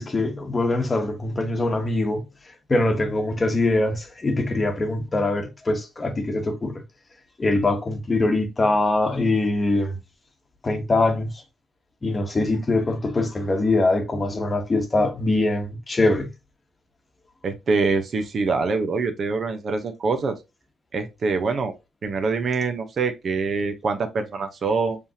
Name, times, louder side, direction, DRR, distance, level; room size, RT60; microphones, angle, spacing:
voice 1, 0.0-2.2 2.7-6.8 7.4-9.9 10.6-11.3 12.0-16.3, left 2 dB, 25° left, 1.1 m, -23 dB
voice 2, 17.4-20.4 20.9-21.7 22.0-25.0, right 4 dB, 50° right, 0.9 m, -24 dB
5.2 x 3.4 x 2.8 m
cardioid pair, 90°, 0 cm